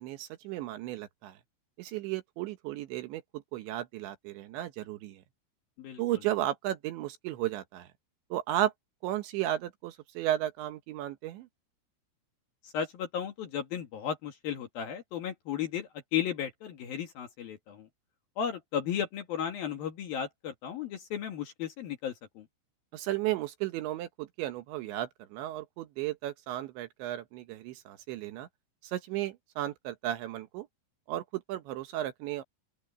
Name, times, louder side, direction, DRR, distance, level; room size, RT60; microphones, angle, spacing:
voice 1, 0.0-1.3 1.8-5.2 6.0-7.9 8.3-8.7 9.0-11.5 22.9-28.5 28.9-30.7 31.1-32.4, right 13 dB, 75° right, 3.2 m, -34 dB
voice 2, 12.6-17.9 18.4-22.4, left 8 dB, 60° left, 3.0 m, -35 dB
open air
omnidirectional pair, 5.7 m